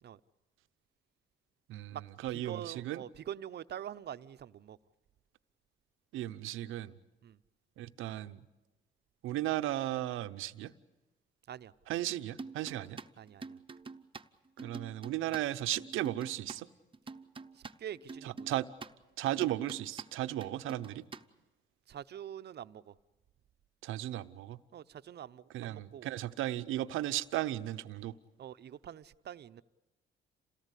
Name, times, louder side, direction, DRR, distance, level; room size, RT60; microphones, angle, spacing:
voice 1, 1.7-3.0 6.1-7.0 7.8-8.4 9.2-10.7 11.9-13.0 14.6-16.7 18.2-18.7 19.2-21.1 23.8-24.6 25.5-28.1, right 14 dB, 90° right, 11 dB, 0.8 m, -35 dB
voice 2, 2.3-4.8 7.2-7.4 11.5-11.7 12.8-12.9 13.2-13.6 17.5-18.5 21.9-22.9 24.7-26.1 28.4-29.6, right 10 dB, 55° right, 13 dB, 0.7 m, -45 dB
sound 1, 12.4-16.6 16.9-18.9 19.3-20.1 20.4-21.2, right 4 dB, 25° right, 0.9 m, -47 dB
28.0 x 18.0 x 8.3 m, 1.1 s
cardioid pair, 90°, 20 cm